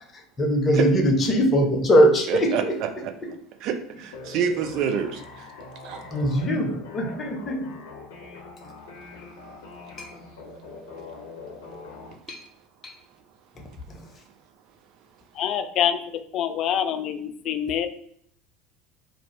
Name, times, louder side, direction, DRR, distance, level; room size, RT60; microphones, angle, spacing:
voice 1, 0.4-2.7 6.1-7.7 10.0-10.1 12.3-12.4 12.8-12.9 13.9-14.0, equal, 30° left, 1 dB, 0.8 m, -21 dB
voice 2, 2.3-2.6 3.0-3.1 3.6-5.2 5.8-6.0, right 8 dB, 55° right, 5 dB, 0.4 m, -27 dB
sound 1, 4.1-12.1, left 4 dB, 65° left, 0.7 m, -42 dB
voice 3, 15.3-17.9, left 9 dB, 45° left, 8 dB, 0.3 m, -26 dB
2.5 x 2.1 x 3.2 m, 0.64 s
figure-of-eight pair, 70°, 0 cm